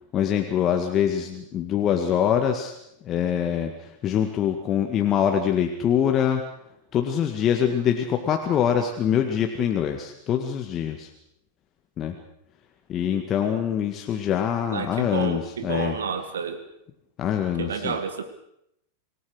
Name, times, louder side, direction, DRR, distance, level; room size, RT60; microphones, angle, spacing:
voice 1, 0.1-2.8 3.0-6.4 6.9-11.1 12.0-12.2 12.9-16.0 17.2-18.0, left 9 dB, 30° left, 4 dB, 1.9 m, -24 dB
voice 2, 14.7-16.6 17.6-18.2, right 6 dB, 65° right, 10 dB, 1.8 m, -30 dB
26.5 x 18.0 x 6.5 m, 0.77 s
figure-of-eight pair, 90°, 0 cm